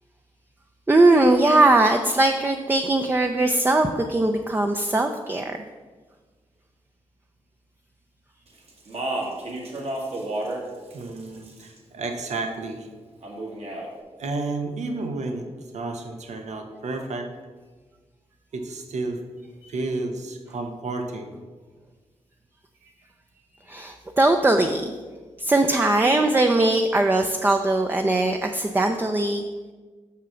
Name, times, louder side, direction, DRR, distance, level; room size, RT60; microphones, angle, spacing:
voice 1, 0.9-5.6 19.6-19.7 23.7-24.9 25.4-29.4, right 2 dB, 15° right, 5 dB, 0.5 m, -20 dB
Speech, 8.7-10.6 10.9-11.8 13.2-13.9, right 1 dB, 60° right, 1.8 m, -31 dB
voice 2, 10.9-12.9 14.2-15.5 15.7-17.3 18.5-19.2 19.7-21.4, right 3 dB, 80° right, 4 dB, 1.0 m, -31 dB
6.0 x 5.7 x 6.2 m, 1.4 s
cardioid pair, 85°, 12 cm